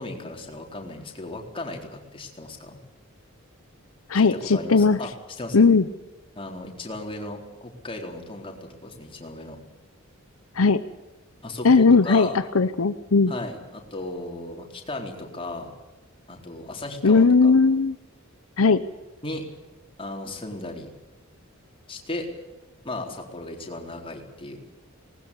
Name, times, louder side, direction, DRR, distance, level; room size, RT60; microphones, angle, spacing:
voice 1, 0.0-2.8 4.1-5.1 5.4-5.7 6.4-9.6 11.4-12.4 13.3-15.7 16.3-17.5 19.2-19.4 20.0-20.9 21.9-22.3 22.8-24.6, left 2 dB, 25° left, 1 dB, 4.0 m, -36 dB
voice 2, 4.1-5.0 5.5-5.8 10.5-10.8 11.6-13.3 17.0-18.0 18.6-18.8, left 4 dB, 75° left, 11 dB, 0.8 m, -18 dB
19.5 x 19.5 x 8.3 m, 1.2 s
head